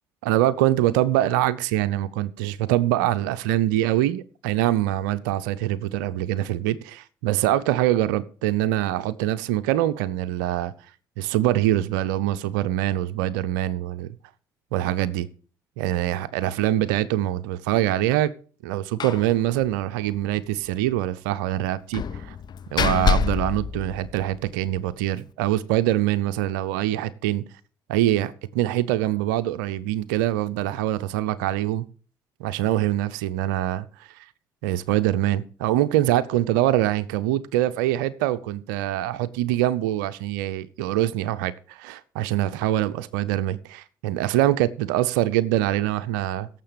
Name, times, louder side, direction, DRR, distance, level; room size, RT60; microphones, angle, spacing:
voice 1, 0.2-10.7 11.2-14.1 14.7-15.3 15.8-18.3 18.6-22.4 22.7-27.4 27.9-31.9 32.4-34.2 34.6-46.5, right 13 dB, 75° right, 0.6 m, -24 dB
Slam, 19.0-19.3 19.6-19.7 20.0-20.2 21.9-24.5, left 6 dB, 45° left, 1.0 m, -26 dB
17.0 x 7.4 x 5.1 m
hypercardioid pair, 55°, 10 cm